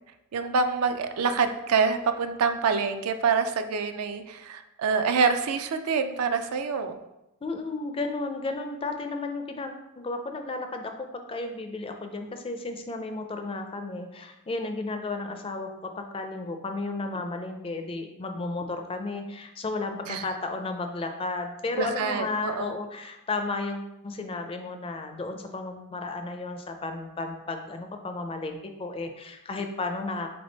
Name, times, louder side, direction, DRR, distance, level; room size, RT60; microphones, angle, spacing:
voice 1, 0.3-7.0 20.1-20.2 21.8-22.7, right 5 dB, 75° right, 9 dB, 0.4 m, -26 dB
voice 2, 7.4-30.3, left 3 dB, 25° left, 6 dB, 0.4 m, -33 dB
3.9 x 3.5 x 3.9 m, 0.91 s
head